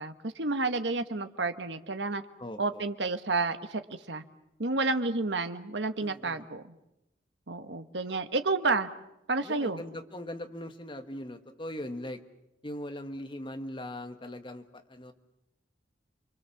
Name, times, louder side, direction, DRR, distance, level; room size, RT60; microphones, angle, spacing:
voice 1, 0.0-2.2 2.6-3.8 4.1-4.2 4.6-6.7 7.5-8.9 9.3-9.8, right 3 dB, 65° right, 9 dB, 1.4 m, -30 dB
voice 2, 2.4-2.8 6.0-6.5 9.4-12.2 12.6-15.1, left 1 dB, 25° left, 7 dB, 1.6 m, -40 dB
29.5 x 23.0 x 7.2 m, 0.88 s
head